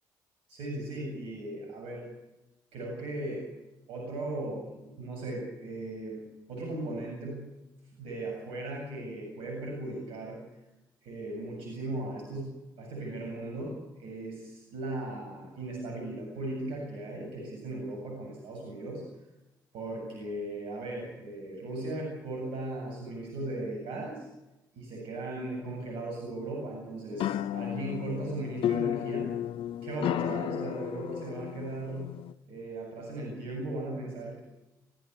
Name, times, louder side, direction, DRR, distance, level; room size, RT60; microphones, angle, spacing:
voice 1, 0.5-2.0 2.7-3.4 3.9-6.2 6.5-7.5 8.0-10.4 11.0-19.0 19.7-24.3 24.8-29.3 29.8-32.1 32.5-34.4, right 2 dB, 70° right, 0 dB, 7.7 m, -37 dB
sound 1, 27.1-32.3, left 11 dB, 65° left, 0.7 m, -33 dB
25.5 x 15.5 x 8.2 m, 0.99 s
hypercardioid pair, 50°, 10 cm